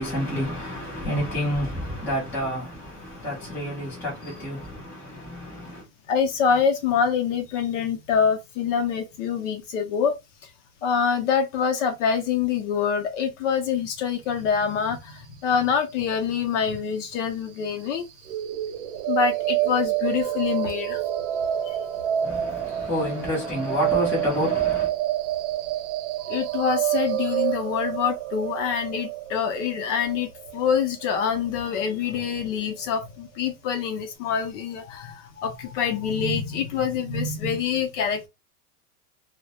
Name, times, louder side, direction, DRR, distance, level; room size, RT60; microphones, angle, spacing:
voice 1, 0.0-5.8 22.2-24.9, equal, 5° left, 0.6 m, -29 dB
voice 2, 1.0-1.5 6.1-10.2 10.8-18.0 19.1-21.0 21.7-21.8 26.3-38.3, left 7 dB, 55° left, 0.6 m, -25 dB
sound 1, 18.3-32.2, right 13 dB, 55° right, 0.5 m, -28 dB
2.2 x 2.1 x 2.8 m
supercardioid pair, 165°, 45 cm